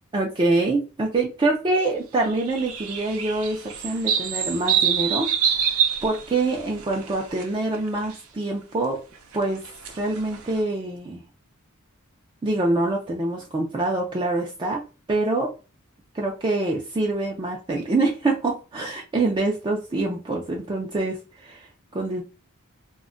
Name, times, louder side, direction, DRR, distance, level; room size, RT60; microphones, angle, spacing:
voice 1, 0.1-9.0 9.3-9.6 9.9-11.2 12.4-14.8 15.1-15.5 16.1-21.7 21.9-22.2, right 2 dB, 20° right, 0 dB, 0.3 m, -25 dB
sound 1, 2.3-7.5 7.7-8.1 9.3-10.6, right 8 dB, 80° right, 0.5 m, -26 dB
2.2 x 2.1 x 3.7 m, 0.32 s
head